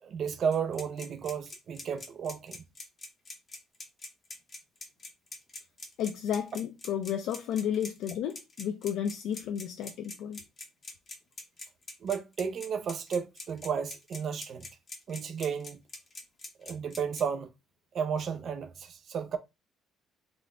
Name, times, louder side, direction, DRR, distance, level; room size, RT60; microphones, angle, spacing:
voice 1, 0.0-2.6 12.0-14.7 15.1-15.8 16.6-17.5 17.9-19.4, right 7 dB, 40° right, 0.5 m, -33 dB
sound 1, 0.5-17.2, left 3 dB, 25° left, 0.8 m, -43 dB
voice 2, 6.0-10.4, left 9 dB, 70° left, 0.4 m, -32 dB
3.7 x 2.2 x 3.6 m
cardioid pair, 175°, 0 cm